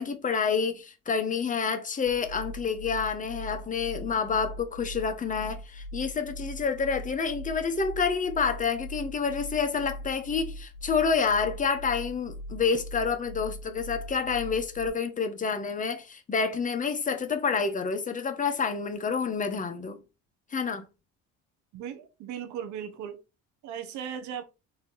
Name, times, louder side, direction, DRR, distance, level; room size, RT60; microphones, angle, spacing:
voice 1, 0.0-20.0 20.5-20.8, left 5 dB, 25° left, 1.1 m, -28 dB
sound 1, 2.1-14.9, equal, 75° left, 0.9 m, -41 dB
voice 2, 21.7-23.2 23.6-24.4, right 8 dB, 75° right, 1.1 m, -37 dB
4.2 x 2.9 x 4.1 m
cardioid pair, 95°, 30 cm